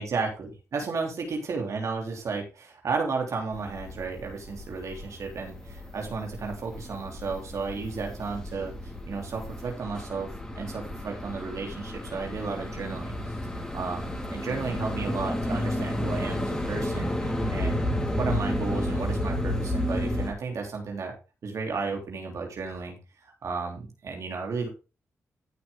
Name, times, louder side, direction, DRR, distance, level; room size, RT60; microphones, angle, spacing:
voice 1, 0.0-8.7 9.1-13.1 13.7-17.8 18.2-21.1 21.4-23.0 23.2-24.7, right 4 dB, 65° right, 1 dB, 3.3 m, -33 dB
sound 1, 3.5-20.3, left 1 dB, 15° left, 3.9 m, -32 dB
14.5 x 6.2 x 3.7 m, 0.30 s
cardioid pair, 65°, 6 cm